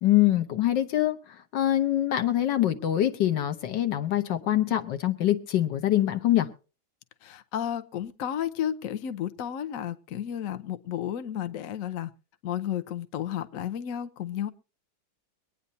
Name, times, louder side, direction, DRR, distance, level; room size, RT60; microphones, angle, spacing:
voice 1, 0.0-1.2 1.5-6.5, left 13 dB, 80° left, 1.7 m, -24 dB
voice 2, 7.2-12.1 12.4-14.5, left 10 dB, 55° left, 1.1 m, -32 dB
23.5 x 9.5 x 2.7 m
omnidirectional pair, 1.9 m